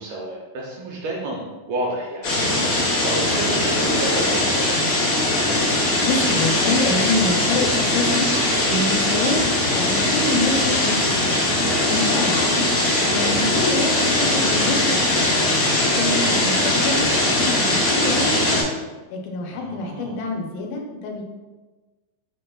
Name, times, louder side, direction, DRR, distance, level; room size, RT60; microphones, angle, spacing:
voice 1, 0.0-2.3 3.0-4.8 13.4-13.6 19.5-20.2, right 2 dB, 80° right, -3 dB, 1.9 m, -30 dB
sound 1, 2.2-18.6, left 1 dB, 60° left, 1.2 m, -20 dB
voice 2, 6.0-8.3 8.6-9.5 9.7-11.4 11.9-12.7 13.0-15.4 15.9-18.7 19.1-21.2, left 2 dB, 80° left, 2 dB, 2.1 m, -26 dB
4.8 x 4.7 x 2.2 m, 1.2 s
omnidirectional pair, 3.9 m